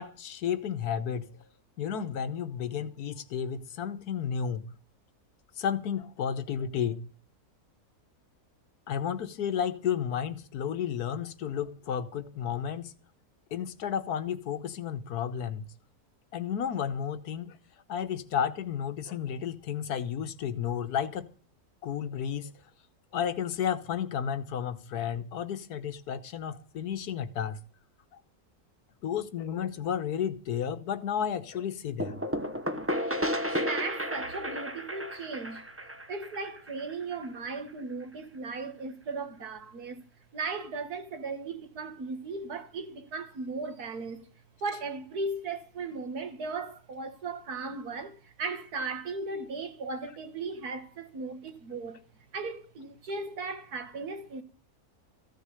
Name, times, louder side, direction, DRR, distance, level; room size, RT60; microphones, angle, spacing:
voice 1, 0.0-1.3 1.8-4.6 5.6-7.0 8.9-12.9 13.5-15.7 16.3-17.6 17.9-21.3 21.8-22.5 23.1-27.6 29.0-32.3 33.5-33.6, left 8 dB, 90° left, 1.5 m, -32 dB
sound 1, 32.0-37.6, equal, 10° right, 0.9 m, -33 dB
voice 2, 33.6-35.6 36.1-40.0 40.3-44.2 44.6-52.0 52.3-54.4, right 3 dB, 80° right, 2.1 m, -37 dB
14.5 x 6.5 x 9.7 m
omnidirectional pair, 1.6 m